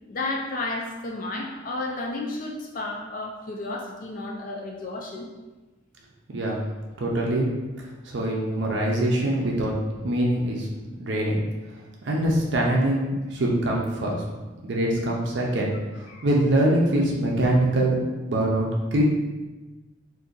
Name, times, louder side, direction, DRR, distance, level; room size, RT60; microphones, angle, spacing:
voice 1, 0.1-5.2 16.1-16.3 17.4-17.5, left 2 dB, 40° left, -1 dB, 0.4 m, -32 dB
voice 2, 6.3-6.6 7.0-7.5 8.0-10.7 11.0-11.4 11.7-14.2 14.6-19.0, right 1 dB, 55° right, -2 dB, 0.5 m, -24 dB
2.6 x 2.5 x 3.7 m, 1.2 s
head